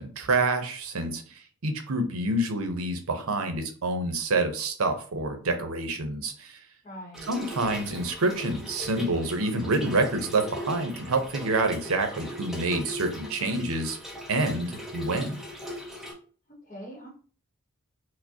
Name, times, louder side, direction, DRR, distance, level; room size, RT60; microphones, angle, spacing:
voice 1, 0.0-6.6 7.3-14.0 14.3-15.3, right 2 dB, 75° right, 6 dB, 0.7 m, -27 dB
voice 2, 6.8-7.3 16.5-17.1, equal, 30° left, -2 dB, 0.9 m, -42 dB
Trickle dribble / Fill (with liquid), 7.1-16.1, equal, ahead, 0.6 m, -39 dB
4.8 x 2.1 x 2.7 m, 0.42 s
head